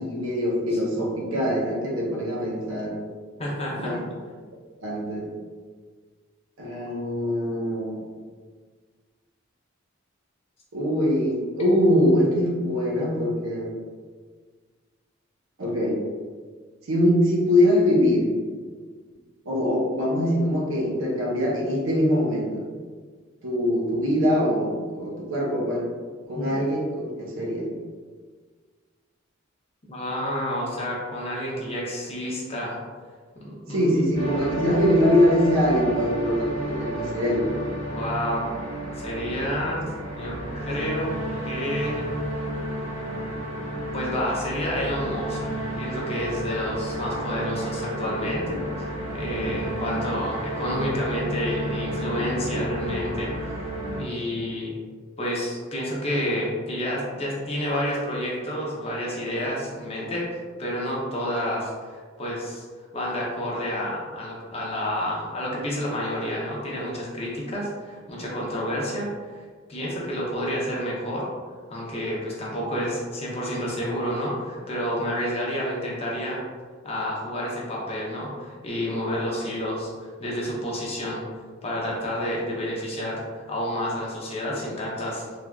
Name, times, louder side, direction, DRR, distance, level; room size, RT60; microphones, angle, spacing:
voice 1, 0.0-3.0 3.8-4.0 4.8-5.3 6.6-8.0 10.7-13.7 15.6-16.0 16.8-18.3 19.5-22.7 23.4-25.9 26.3-27.7 33.7-37.5, equal, 70° right, -3 dB, 0.7 m, -23 dB
voice 2, 3.4-3.9 26.4-26.5 29.9-32.8 33.4-33.9 37.9-38.5 39.0-39.8 40.2-41.1 41.4-42.1 43.9-53.7 54.0-54.7 55.2-62.6 62.9-69.1 69.7-71.2 71.7-76.4 76.8-81.2 81.6-85.4, equal, 30° left, -4 dB, 0.6 m, -29 dB
sound 1, 34.1-54.0, right 1 dB, 90° right, 1.5 m, -31 dB
3.2 x 2.3 x 2.2 m, 1.6 s
head